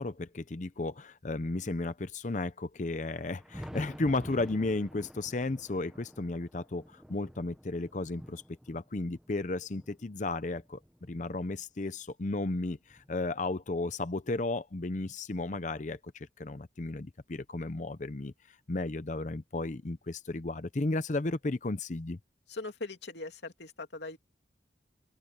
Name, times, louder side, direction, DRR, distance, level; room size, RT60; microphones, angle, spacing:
voice 1, 0.0-8.4 8.7-22.2, left 2 dB, 40° left, 0.7 m, -34 dB
Thunder, 3.0-11.6 12.2-13.9 15.1-15.2 15.7-15.8 17.7-17.8 19.2-19.3 20.8-20.9, equal, ahead, 1.0 m, -50 dB
voice 2, 22.5-24.2, left 3 dB, 70° left, 2.9 m, -40 dB
open air
head